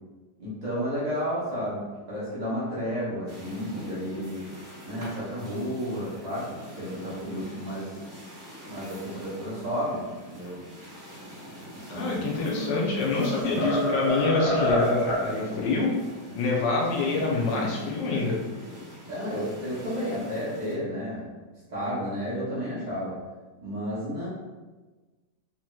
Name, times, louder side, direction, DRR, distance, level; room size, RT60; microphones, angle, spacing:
voice 1, 0.4-4.5 4.8-8.0 8.6-10.6 11.9-12.4 13.5-13.7 19.1-21.3 21.7-23.2 23.6-24.3, equal, 60° right, -10 dB, 0.4 m, -32 dB
sound 1, 3.3-20.7, equal, 40° right, 1.2 m, -44 dB
voice 2, 11.9-15.9 16.3-18.4, left 3 dB, 75° left, -2 dB, 1.3 m, -26 dB
sound 2, 12.4-12.8 13.2-15.3, equal, 50° left, 1.3 m, -27 dB
3.3 x 3.0 x 2.2 m, 1.3 s
omnidirectional pair, 2.0 m